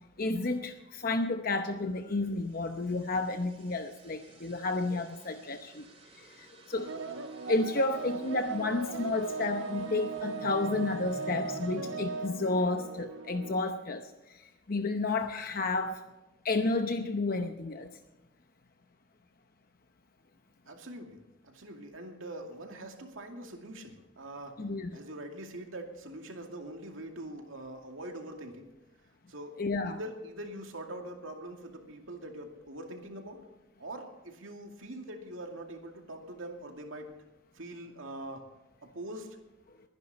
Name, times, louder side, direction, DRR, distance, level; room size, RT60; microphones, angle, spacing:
voice 1, 0.2-5.9 6.1-6.9 7.5-16.0 16.4-17.9 24.6-25.0 29.6-30.0, left 2 dB, 45° left, 6 dB, 0.8 m, -31 dB
sound 1, 2.4-13.1, right 1 dB, 30° right, 2.4 m, -52 dB
sound 2, 6.7-13.6, right 4 dB, 70° right, 0.9 m, -38 dB
voice 2, 20.7-24.6 24.9-28.7 29.3-29.6 29.8-33.4 33.8-37.2 37.5-38.5 38.9-39.3, right 1 dB, 90° right, 3 dB, 2.4 m, -43 dB
22.5 x 10.5 x 4.2 m, 1.0 s
head